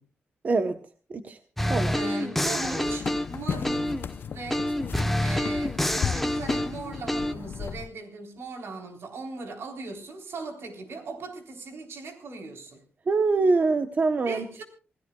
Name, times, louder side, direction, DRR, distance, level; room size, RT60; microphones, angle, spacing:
voice 1, 0.4-0.8 1.1-1.4 1.7-2.0 13.1-14.4, right 3 dB, 40° right, 0.9 m, -24 dB
sound 1, 1.6-4.1 4.5-7.3, left 1 dB, 5° left, 1.0 m, -27 dB
voice 2, 1.9-3.9 4.3-4.7 5.2-12.8 14.3-14.6, right 3 dB, 75° right, 3.7 m, -38 dB
sound 2, 2.6-7.9, left 7 dB, 55° left, 0.6 m, -35 dB
27.5 x 17.0 x 2.3 m
wide cardioid pair, 155°, 4 cm